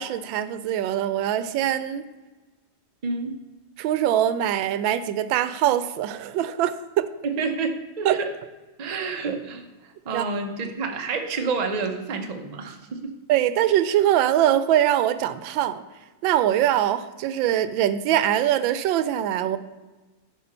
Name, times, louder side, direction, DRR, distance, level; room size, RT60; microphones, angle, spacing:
voice 1, 0.0-2.0 3.8-7.1 8.0-8.2 10.1-10.2 13.3-15.8 16.2-19.6, right 11 dB, 90° right, 13 dB, 1.3 m, -22 dB
voice 2, 3.0-3.4 7.2-8.3 8.8-9.7 10.0-13.1, right 4 dB, 55° right, 4 dB, 0.4 m, -29 dB
10.5 x 5.7 x 4.3 m, 1.2 s
omnidirectional pair, 2.0 m